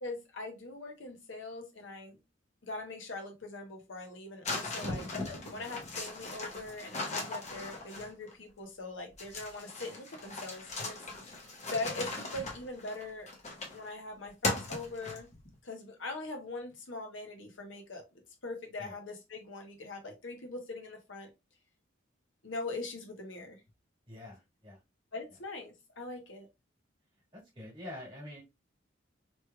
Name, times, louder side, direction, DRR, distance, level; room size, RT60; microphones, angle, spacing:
voice 1, 0.0-2.2 2.6-11.0 11.3-11.4 11.7-13.3 13.7-15.3 15.6-18.0 18.4-21.3 22.4-23.6 25.1-26.5, left 2 dB, 75° left, 3 dB, 1.0 m, -42 dB
sound 1, 4.5-8.3 9.2-13.9 14.4-15.5, left 2 dB, 35° left, 0.9 m, -38 dB
voice 2, 24.1-24.8 27.3-28.4, left 1 dB, 25° right, -4 dB, 1.6 m, -46 dB
3.1 x 3.1 x 2.2 m, 0.23 s
head